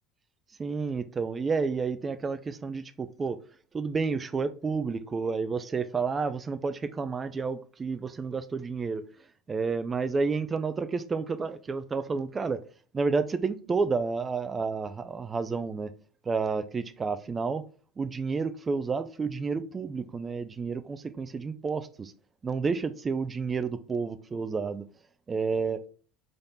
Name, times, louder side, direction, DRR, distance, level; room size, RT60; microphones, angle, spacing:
voice 1, 0.6-3.4 3.7-9.0 9.5-12.6 12.9-15.9 16.2-17.6 18.0-22.1 22.4-24.9 25.3-25.8, right 4 dB, 25° right, 0.4 m, -30 dB
3.8 x 3.4 x 4.0 m
hypercardioid pair, 70°, 0 cm